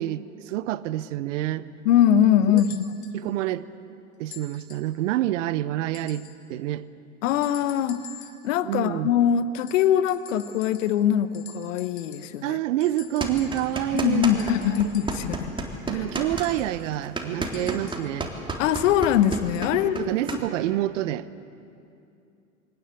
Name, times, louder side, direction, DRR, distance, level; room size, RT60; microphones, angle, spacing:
voice 1, 0.0-1.7 2.5-2.6 3.1-3.7 4.2-6.9 8.6-9.1 12.4-14.5 15.9-18.3 19.7-21.3, right 13 dB, 60° right, 16 dB, 1.0 m, -28 dB
voice 2, 1.8-2.9 7.2-8.0 8.4-12.6 13.9-15.5 15.9-16.0 18.6-20.4, left 10 dB, 65° left, 13 dB, 1.1 m, -22 dB
sound 1, 2.6-3.2 4.3-5.0 5.9-6.5 7.4-8.5 9.6-11.1 11.3-12.4 12.8-15.4 16.4-18.2 19.4-19.7 20.7-20.8, left 10 dB, 45° left, 3.1 m, -47 dB
sound 2, 13.2-14.6 14.8-20.4, right 2 dB, 10° right, 3.6 m, -31 dB
25.5 x 18.5 x 8.3 m, 2.6 s
hypercardioid pair, 85°, 41 cm